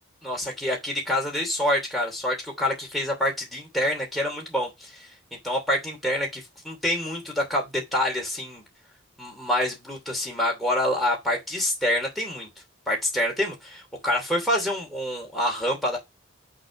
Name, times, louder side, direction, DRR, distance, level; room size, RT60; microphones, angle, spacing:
voice 1, 0.2-4.9 5.4-8.6 9.2-12.5 12.9-16.0, left 1 dB, ahead, 2.7 m, -26 dB
6.5 x 4.1 x 5.2 m
head